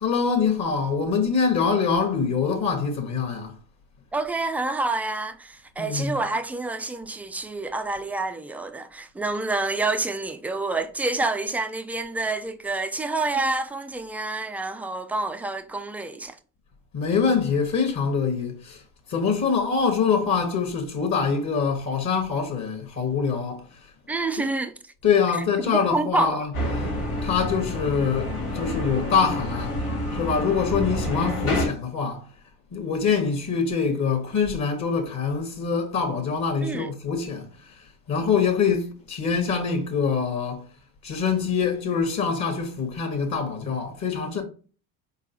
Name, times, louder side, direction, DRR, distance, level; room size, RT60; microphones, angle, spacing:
voice 1, 0.0-3.5 5.8-6.2 16.9-18.8 19.1-23.7 24.4-24.5 25.0-26.5 27.2-29.8 30.1-32.3 32.7-37.7 38.1-40.6 41.0-44.4, left 5 dB, 40° left, 1.5 m, -24 dB
voice 2, 4.1-16.4 24.1-24.8 25.6-26.5 36.6-36.9, right 3 dB, 5° right, 0.4 m, -28 dB
sound 1, 26.5-31.7, left 1 dB, 90° left, 1.7 m, -28 dB
4.7 x 3.8 x 2.9 m
hypercardioid pair, 70°, 44 cm